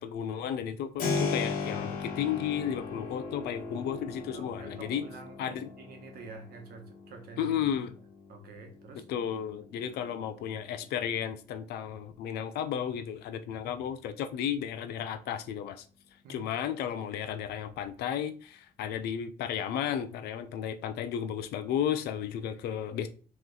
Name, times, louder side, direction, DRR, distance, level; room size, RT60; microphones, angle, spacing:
voice 1, 0.0-5.0 5.4-5.7 7.4-7.9 9.1-15.9 16.3-23.1, left 9 dB, 75° left, 0.6 m, -33 dB
Keyboard (musical), 1.0-11.7, left 4 dB, 55° left, 1.2 m, -38 dB
voice 2, 4.3-7.6 8.3-9.1 16.2-16.5, right 5 dB, 65° right, 1.0 m, -48 dB
3.1 x 3.0 x 3.9 m
cardioid pair, 110°, 17 cm